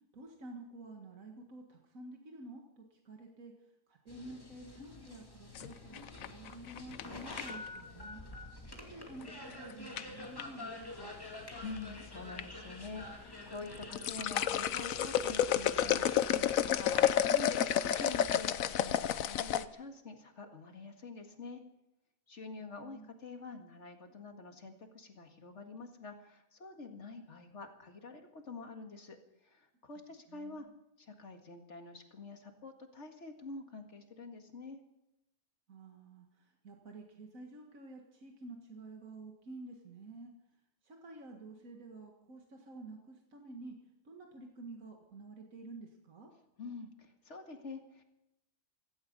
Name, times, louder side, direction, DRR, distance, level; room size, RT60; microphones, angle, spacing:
voice 1, 0.1-3.5 3.9-8.2 8.8-11.2 22.6-23.1 30.3-30.7 35.7-40.3 40.8-43.8 44.1-46.3, right 2 dB, 85° right, 1 dB, 2.2 m, -50 dB
sound 1, 4.1-18.4, left 1 dB, 15° left, 2.5 m, -48 dB
sound 2, 5.5-7.7 9.2-9.5 10.0-10.4 11.3-11.9 12.2-12.4 12.9-13.0 13.6-19.6, left 10 dB, 85° left, 1.2 m, -31 dB
voice 2, 11.6-21.6 22.3-29.2 29.4-30.7 31.0-34.8 46.6-48.0, left 3 dB, 60° left, 4 dB, 2.2 m, -47 dB
16.5 x 16.0 x 5.4 m, 0.86 s
omnidirectional pair, 1.4 m